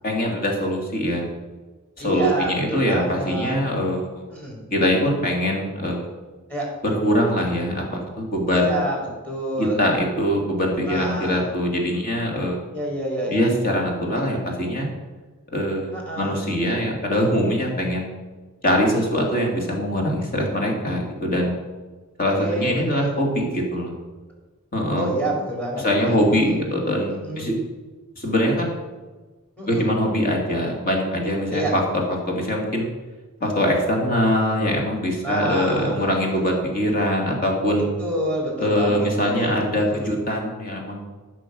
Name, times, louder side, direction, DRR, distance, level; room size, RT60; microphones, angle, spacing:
voice 1, 0.0-1.3 2.0-4.2 4.7-6.0 6.8-8.8 9.6-12.6 13.3-14.9 15.5-18.1 18.6-21.5 22.2-23.9 24.7-25.1 25.8-27.5 28.2-28.7 29.7-31.8 32.1-32.9 33.4-37.9 38.6-41.0, equal, 40° left, 0 dB, 2.8 m, -23 dB
voice 2, 2.0-3.6 4.3-4.6 6.5-6.7 8.5-9.8 10.9-11.5 12.7-13.4 15.9-16.4 22.4-23.1 24.9-26.7 27.1-27.6 29.6-29.9 31.5-31.7 35.2-36.2 38.0-40.1, right 1 dB, 5° left, -1 dB, 3.7 m, -28 dB
14.0 x 6.2 x 6.3 m, 1.3 s
head